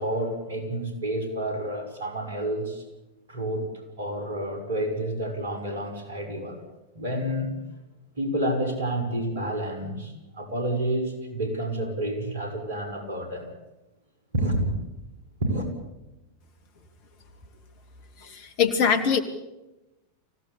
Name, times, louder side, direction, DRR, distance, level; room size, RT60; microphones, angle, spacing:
voice 1, 0.0-2.8 3.3-3.6 4.0-6.6 6.9-7.5 8.2-13.5 14.3-14.8 15.4-15.7, right 1 dB, 65° right, 5 dB, 6.3 m, -29 dB
voice 2, 18.2-19.2, left 6 dB, 45° left, 8 dB, 3.0 m, -23 dB
25.0 x 17.0 x 8.6 m, 1.0 s
figure-of-eight pair, 90°, 0 cm